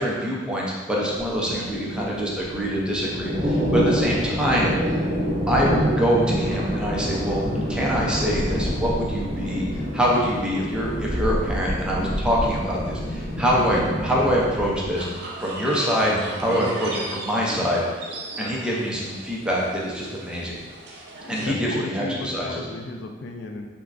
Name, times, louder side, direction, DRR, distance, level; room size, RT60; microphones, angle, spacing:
voice 1, 0.0-4.7 5.5-9.7 9.9-17.8 18.4-20.6 21.3-22.7, equal, 5° right, -4 dB, 0.5 m, -24 dB
sound 1, 1.1-14.9, equal, 30° right, 0.8 m, -27 dB
sound 2, 1.3-17.6, equal, 40° left, 1.0 m, -38 dB
sound 3, 14.9-21.5, right 2 dB, 60° right, 0.6 m, -38 dB
voice 2, 21.2-23.7, left 3 dB, 70° left, 4 dB, 0.3 m, -34 dB
3.4 x 3.0 x 2.4 m, 1.4 s
head